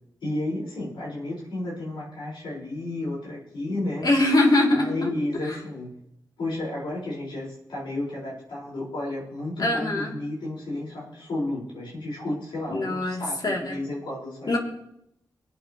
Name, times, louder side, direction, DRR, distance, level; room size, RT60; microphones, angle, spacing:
voice 1, 0.2-4.1 4.7-5.9 6.4-14.6, left 1 dB, 85° left, -5 dB, 4.4 m, -32 dB
voice 2, 4.0-5.1 5.5-5.6 9.6-10.1 12.7-13.8 14.5-14.6, left 2 dB, 55° left, -1 dB, 2.6 m, -23 dB
22.5 x 8.6 x 3.0 m, 0.79 s
cardioid pair, 45°, 8 cm